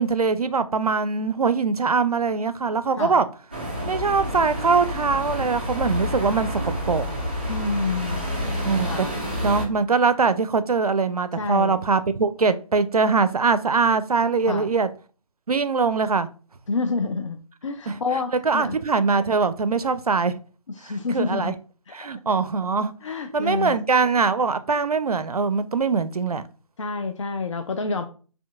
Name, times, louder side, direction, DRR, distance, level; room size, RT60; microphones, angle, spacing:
voice 1, 0.0-3.3 3.8-7.1 8.6-8.9 9.4-14.9 15.5-16.3 17.9-18.0 18.4-20.3 21.1-21.5 21.9-22.9 23.3-26.4, right 4 dB, 80° right, 0.4 m, -22 dB
sound 1, 3.5-9.7, equal, 15° right, 0.4 m, -29 dB
voice 2, 7.5-9.3 11.4-11.8 14.5-14.7 16.7-18.8 20.7-21.5 21.9-22.0 23.0-23.8 26.8-28.0, left 4 dB, 55° left, 0.4 m, -28 dB
4.3 x 2.7 x 2.3 m
figure-of-eight pair, 150°, 19 cm